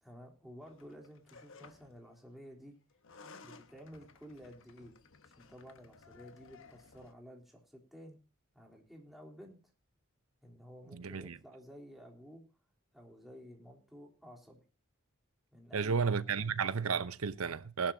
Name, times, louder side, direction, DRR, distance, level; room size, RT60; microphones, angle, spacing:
voice 1, 0.0-2.7 3.4-5.0 5.3-8.2 8.5-9.7 10.4-12.4 12.9-14.6 15.5-16.4, equal, ahead, 3.6 m, -53 dB
sound 1, 0.6-2.0 2.9-7.1, left 4 dB, 65° left, 1.2 m, -57 dB
voice 2, 10.9-11.4 15.7-17.9, right 5 dB, 85° right, 0.9 m, -33 dB
19.5 x 11.0 x 2.8 m
head